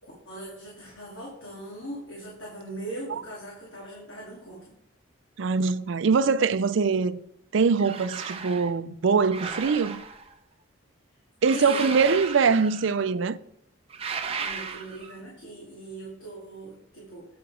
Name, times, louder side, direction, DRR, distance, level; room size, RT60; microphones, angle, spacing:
voice 1, 0.0-4.7 11.5-12.1 14.4-17.3, right 1 dB, 75° left, 2.7 m, -40 dB
voice 2, 5.4-7.2 7.5-10.0 11.4-13.4, right 5 dB, 65° right, 0.4 m, -23 dB
sound 1, 7.7-8.7 9.3-10.3 11.4-13.0 13.9-15.1, right 5 dB, 30° right, 0.8 m, -35 dB
8.8 x 6.8 x 5.0 m
head